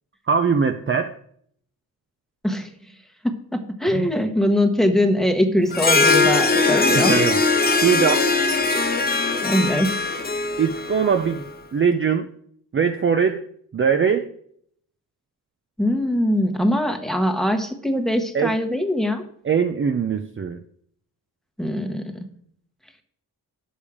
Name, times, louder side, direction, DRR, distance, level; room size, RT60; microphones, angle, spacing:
voice 1, 0.3-1.2 3.9-4.1 6.9-7.4 7.8-8.3 10.6-11.4 11.7-12.3 12.7-13.4 13.7-14.3 18.3-18.5 19.4-20.6, right 6 dB, 35° right, 6 dB, 0.5 m, -21 dB
voice 2, 3.2-7.2 9.4-10.0 15.8-19.3 21.6-22.2, left 1 dB, ahead, 6 dB, 1.1 m, -22 dB
Harp, 5.7-11.4, left 3 dB, 25° left, 0.8 m, -20 dB
10.0 x 7.2 x 4.9 m, 0.66 s
wide cardioid pair, 135°, 37 cm